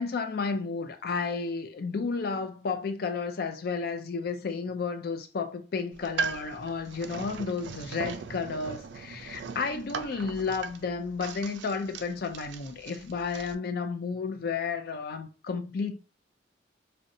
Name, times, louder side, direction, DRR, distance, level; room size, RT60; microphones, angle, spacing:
voice 1, 0.0-16.0, left 4 dB, 55° left, 0.4 m, -32 dB
sound 1, 5.9-13.5, right 5 dB, 70° right, 0.3 m, -39 dB
2.6 x 2.1 x 2.6 m
head